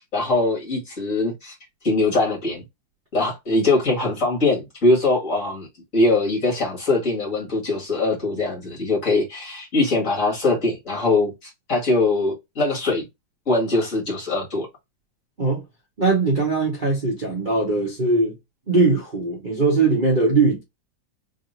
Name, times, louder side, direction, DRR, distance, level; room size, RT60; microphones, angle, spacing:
voice 1, 0.1-1.5 1.8-2.6 3.1-5.7 5.9-13.1 13.5-14.7, left 2 dB, 40° left, 2.3 m, -22 dB
voice 2, 16.0-18.4 18.7-20.6, right 3 dB, 30° right, 1.2 m, -20 dB
3.9 x 3.6 x 2.6 m
omnidirectional pair, 2.2 m